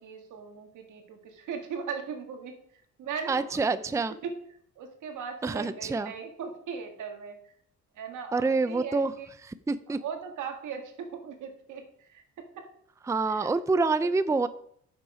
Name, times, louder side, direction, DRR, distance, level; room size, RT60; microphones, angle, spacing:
voice 1, 0.0-3.8 4.2-4.3 4.8-7.5 7.9-9.3 9.9-12.2 12.5-12.7 13.3-13.5 14.0-14.1, right 6 dB, 80° right, 4 dB, 2.0 m, -39 dB
voice 2, 3.3-4.1 5.4-6.1 8.3-9.1 9.5-10.0 13.1-14.5, right 3 dB, 10° right, 14 dB, 0.5 m, -27 dB
9.7 x 7.1 x 5.1 m, 0.65 s
cardioid pair, 90°, 30 cm